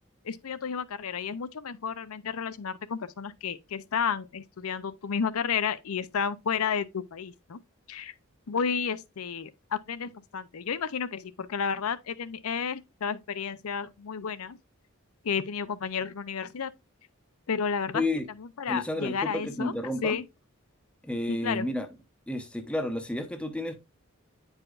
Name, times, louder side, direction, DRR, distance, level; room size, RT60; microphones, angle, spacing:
voice 1, 0.2-7.6 7.9-8.1 8.5-14.6 15.2-16.7 17.5-18.0 18.4-19.7 20.0-20.3 21.3-21.7, left 6 dB, 85° left, 0.5 m, -32 dB
voice 2, 17.9-18.3 18.7-20.2 21.0-21.9 22.3-23.7, left 1 dB, 5° left, 0.7 m, -31 dB
8.8 x 4.9 x 2.4 m
head